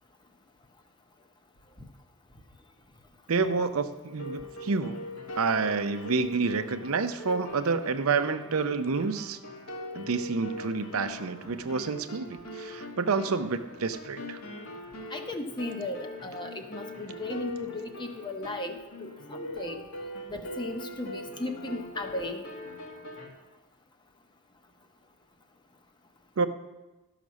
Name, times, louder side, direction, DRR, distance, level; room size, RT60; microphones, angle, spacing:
voice 1, 3.3-5.0 5.4-9.4 10.0-14.4 26.4-26.5, right 4 dB, 70° right, 9 dB, 0.6 m, -28 dB
sound 1, 4.1-23.3, left 1 dB, 80° left, 1.8 m, -42 dB
voice 2, 15.1-19.8 20.3-22.5, left 2 dB, 20° left, 5 dB, 0.8 m, -36 dB
12.0 x 5.8 x 6.2 m, 1.1 s
head